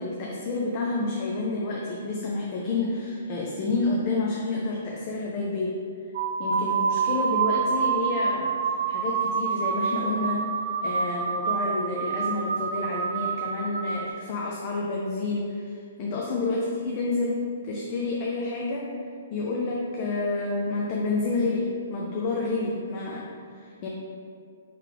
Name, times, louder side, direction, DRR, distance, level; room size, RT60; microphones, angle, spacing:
voice 1, 0.0-5.8 6.4-10.5 10.8-19.0 19.3-23.9, left 3 dB, 40° left, -3 dB, 0.5 m, -29 dB
sound 1, 6.1-14.1, right 6 dB, 50° right, 0.3 m, -27 dB
4.4 x 3.3 x 3.5 m, 2.2 s
hypercardioid pair, 130°, 0 cm